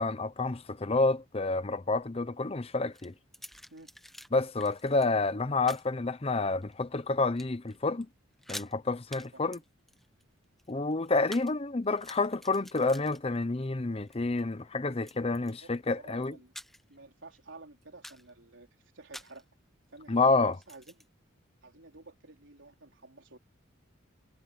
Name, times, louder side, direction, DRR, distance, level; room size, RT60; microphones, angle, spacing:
voice 1, 0.0-3.1 4.3-8.1 8.5-9.6 10.7-16.3 20.1-20.6, left 3 dB, 30° left, 0.7 m, -29 dB
sound 1, 2.9-4.3 4.6-5.1 5.7-5.9 6.5-7.1 7.4-7.8 8.0-8.1 8.3-8.7 9.1-9.3 9.5-11.5 11.8-13.7 14.0-14.4 15.0-15.8 16.2-17.0 17.3-17.4 17.8-18.3 19.1-19.4 20.5-21.1, equal, ahead, 1.0 m, -48 dB
voice 2, 15.4-16.5 16.9-18.7 18.9-19.5 19.9-21.0 21.6-23.4, right 3 dB, 65° right, 4.2 m, -52 dB
head